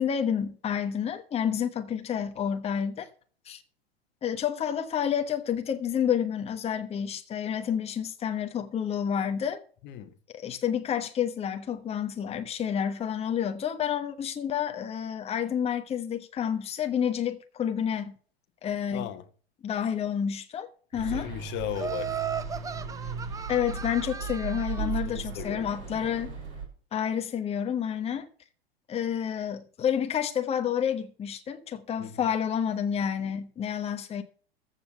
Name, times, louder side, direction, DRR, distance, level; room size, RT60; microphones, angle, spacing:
voice 1, 0.0-3.1 3.5-3.6 4.2-9.6 10.4-18.2 18.6-19.1 19.6-20.7 20.9-21.3 23.5-26.3 26.9-28.3 28.9-34.2, left 8 dB, 20° left, 1.2 m, -29 dB
voice 2, 9.8-10.2 18.9-19.3 21.0-22.2 22.5-22.6 24.8-25.7 32.0-32.3, left 12 dB, 35° left, 1.5 m, -37 dB
sound 1, 20.9-26.7, right 5 dB, 40° right, 7.3 m, -36 dB
Laughter, 21.7-25.0, right 7 dB, 10° right, 0.6 m, -36 dB
14.5 x 5.8 x 7.1 m
figure-of-eight pair, 90°, 32 cm